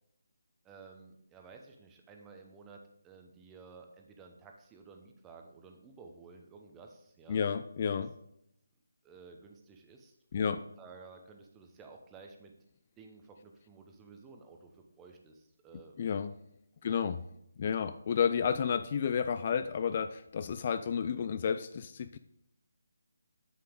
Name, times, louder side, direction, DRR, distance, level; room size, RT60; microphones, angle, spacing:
voice 1, 0.6-7.5 9.0-12.5 13.0-16.0 16.8-17.0, right 4 dB, 15° right, 3 dB, 0.9 m, -54 dB
voice 2, 7.3-8.1 10.3-10.6 16.0-16.3 16.8-17.2 17.6-22.2, left 7 dB, 35° left, 11 dB, 0.3 m, -31 dB
7.7 x 6.8 x 3.7 m, 0.79 s
figure-of-eight pair, 155°, 0 cm